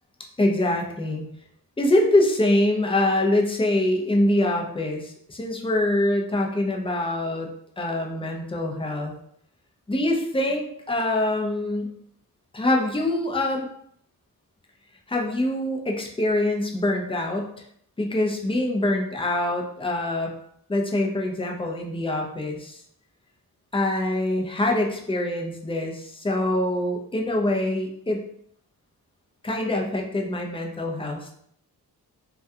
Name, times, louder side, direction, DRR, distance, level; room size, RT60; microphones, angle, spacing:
voice 1, 0.4-1.3 1.8-7.5 7.8-9.1 9.9-11.9 12.5-13.7 15.1-17.5 18.0-20.3 20.7-22.8 23.7-28.2 29.4-31.4, left 1 dB, 15° left, 0 dB, 0.5 m, -24 dB
2.3 x 2.2 x 2.7 m, 0.67 s
cardioid pair, 55°, 40 cm